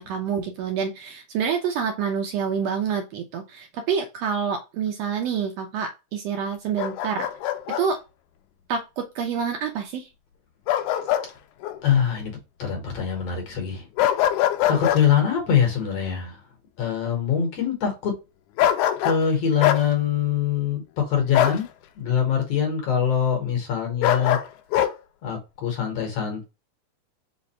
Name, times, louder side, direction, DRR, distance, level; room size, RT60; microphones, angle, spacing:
voice 1, 0.0-7.3 7.7-8.0 8.7-10.1, right 6 dB, 75° right, 1.6 m, -27 dB
Bark, 6.8-7.8 10.7-11.3 11.6-11.8 14.0-15.0 18.6-19.2 19.6-19.8 21.3-21.6 24.0-24.9, left 11 dB, 90° left, 2.0 m, -22 dB
voice 2, 11.8-12.3 12.6-13.9 14.7-16.4 16.8-18.1 19.0-21.7 22.0-24.4 25.2-26.4, left 8 dB, 60° left, 2.2 m, -23 dB
5.2 x 2.4 x 4.2 m
omnidirectional pair, 3.4 m